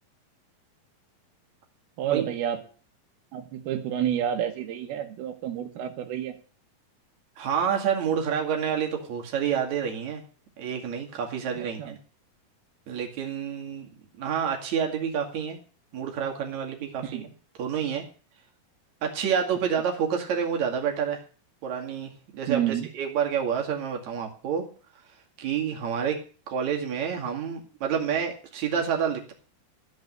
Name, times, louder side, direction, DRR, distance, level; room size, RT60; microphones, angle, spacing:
voice 1, 2.0-2.6 3.3-6.4 11.6-12.0 17.0-17.3 22.5-22.9, right 10 dB, 85° right, 6 dB, 3.1 m, -29 dB
voice 2, 7.4-10.2 10.6-12.0 12.9-13.9 14.1-15.6 15.9-17.3 17.6-18.0 19.0-21.2 21.6-24.7 25.4-26.2 26.5-29.3, right 7 dB, 50° right, 1 dB, 3.4 m, -28 dB
14.0 x 5.4 x 9.2 m, 0.39 s
omnidirectional pair, 4.3 m